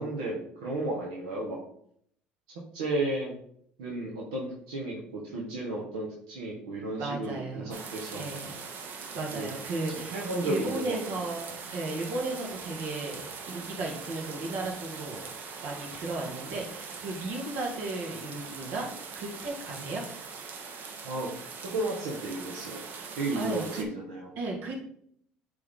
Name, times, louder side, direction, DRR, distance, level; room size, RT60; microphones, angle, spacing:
voice 1, 0.0-1.6 2.7-3.3 3.8-8.4 9.3-9.6 10.1-11.0 21.0-21.3 21.6-22.8 23.1-24.3, right 2 dB, 85° right, -3 dB, 1.3 m, -33 dB
voice 2, 7.0-7.6 8.1-8.5 9.1-15.2 15.6-20.0 23.4-23.8 24.4-24.8, right 2 dB, 70° right, 0 dB, 1.9 m, -35 dB
sound 1, 7.7-23.8, right 5 dB, 55° right, 1.0 m, -42 dB
8.5 x 3.5 x 3.7 m, 0.66 s
supercardioid pair, 80°, 4 cm